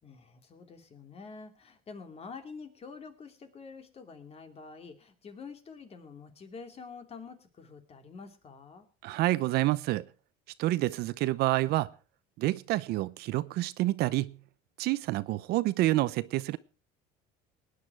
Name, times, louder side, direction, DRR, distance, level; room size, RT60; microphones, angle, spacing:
voice 1, 0.0-8.9, left 5 dB, 35° left, 2.7 m, -47 dB
voice 2, 9.0-10.1 10.6-11.9 12.4-14.4 14.8-16.6, right 17 dB, 65° right, 0.8 m, -28 dB
19.0 x 9.8 x 4.6 m
supercardioid pair, 105°, 18 cm